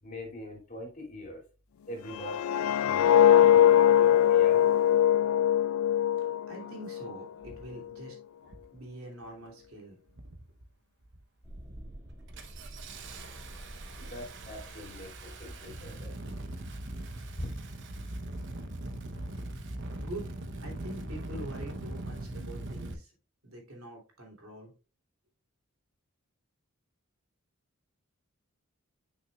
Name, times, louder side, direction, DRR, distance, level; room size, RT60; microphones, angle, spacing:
voice 1, 0.0-1.4 1.9-2.5 2.8-4.7 14.0-16.3 17.4-17.5, left 1 dB, 40° left, -1 dB, 2.7 m, -43 dB
sound 1, 2.1-7.1 7.5-7.8, left 10 dB, 80° left, 0.3 m, -22 dB
voice 2, 6.5-8.2 8.7-10.0 20.0-20.3 20.6-23.1 23.4-24.7, right 1 dB, 85° right, 0 dB, 3.0 m, -44 dB
Engine starting, 6.6-6.7 7.4-7.7 8.4-8.8 9.1-9.7 10.1-10.6 11.0-11.2 11.6-22.9, right 1 dB, 60° right, 0.9 m, -41 dB
sound 2, 11.4-16.6, right 1 dB, 15° right, 2.2 m, -49 dB
8.7 x 6.2 x 2.4 m, 0.32 s
head